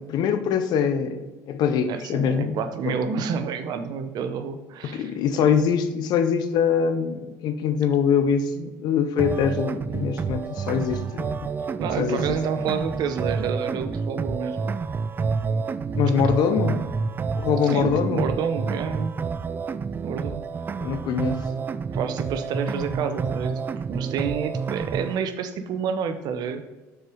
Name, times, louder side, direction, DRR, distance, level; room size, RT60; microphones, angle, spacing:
voice 1, 0.1-2.6 2.8-3.0 4.8-11.4 12.0-12.4 15.9-16.8 17.4-18.2 20.8-21.4, left 7 dB, 65° left, 10 dB, 0.8 m, -23 dB
voice 2, 1.9-5.5 11.8-14.6 16.5-16.8 17.7-19.1 20.0-20.4 21.9-23.6 23.9-26.6, right 6 dB, 60° right, 9 dB, 0.8 m, -29 dB
sound 1, 9.2-25.2, right 5 dB, 25° right, 0.3 m, -29 dB
6.5 x 4.7 x 5.2 m, 1.2 s
supercardioid pair, 95°, 8 cm